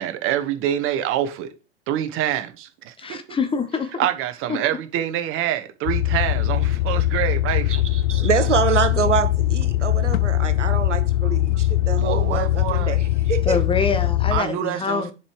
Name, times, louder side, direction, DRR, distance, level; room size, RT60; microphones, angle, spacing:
voice 1, 0.0-1.5 1.9-3.4 4.0-7.8 12.0-13.0 14.3-15.1, right 11 dB, 35° right, 1.3 m, -26 dB
voice 2, 3.0-3.9 4.5-4.6 13.5-15.1, left 5 dB, 15° left, 1.0 m, -25 dB
sound 1, 5.9-14.4, left 14 dB, 55° left, 0.6 m, -21 dB
voice 3, 7.7-13.6, right 6 dB, 85° right, 0.9 m, -25 dB
7.2 x 4.9 x 4.6 m
figure-of-eight pair, 95°, 35 cm